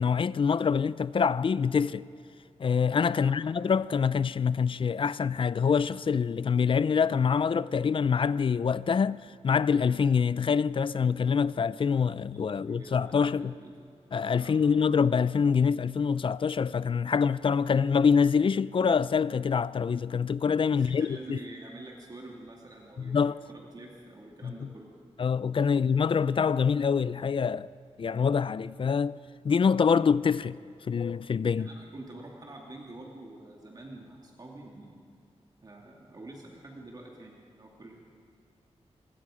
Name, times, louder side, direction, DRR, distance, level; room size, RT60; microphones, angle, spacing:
voice 1, 0.0-2.1 2.6-13.6 14.1-21.4 23.0-23.4 24.4-24.5 25.2-27.7 28.0-29.2 29.4-30.6 30.9-31.7, left 6 dB, 50° left, 0.4 m, -25 dB
voice 2, 12.3-13.8 14.3-14.8 20.7-24.9 31.5-35.0 35.6-38.0, right 2 dB, 35° right, 2.4 m, -47 dB
26.0 x 21.5 x 5.0 m
wide cardioid pair, 110°, 11 cm